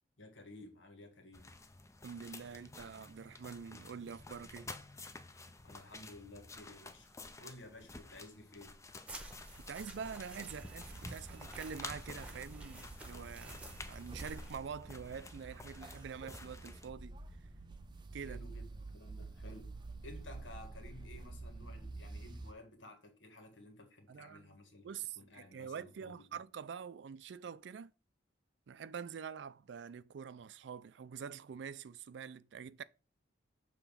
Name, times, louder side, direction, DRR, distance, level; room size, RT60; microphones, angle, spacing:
voice 1, 0.2-1.5 5.6-7.1 7.4-8.8 18.2-19.8 20.0-26.4, left 1 dB, 90° left, 1.7 m, -54 dB
sound 1, 1.3-16.9, left 3 dB, 15° left, 0.5 m, -52 dB
voice 2, 2.0-4.7 9.7-13.6 13.9-17.2 18.1-18.4 24.1-24.6 24.8-27.9 28.7-32.8, right 6 dB, 70° right, 0.4 m, -46 dB
sound 2, 9.1-14.6, right 1 dB, 5° right, 1.1 m, -51 dB
sound 3, 10.5-22.5, right 2 dB, 25° right, 0.6 m, -49 dB
6.9 x 3.0 x 5.6 m
head